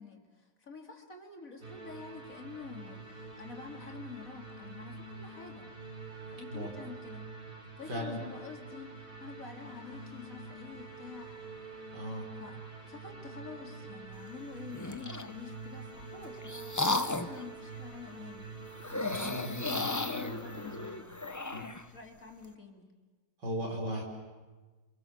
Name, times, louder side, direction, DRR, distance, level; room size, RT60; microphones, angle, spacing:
voice 1, 0.0-5.7 6.3-7.3 7.8-11.3 12.3-18.5 18.9-22.9, left 5 dB, 50° left, 3 dB, 3.4 m, -48 dB
sound 1, 1.6-21.0, right 3 dB, 70° right, 4.4 m, -46 dB
voice 2, 11.9-12.3 19.0-19.9 21.5-21.6 23.4-24.0, equal, 85° right, 0 dB, 6.0 m, -37 dB
sound 2, 14.7-15.3 16.0-17.4 18.8-21.8, left 2 dB, 15° left, 0.6 m, -34 dB
29.5 x 27.0 x 7.5 m, 1.3 s
omnidirectional pair, 1.8 m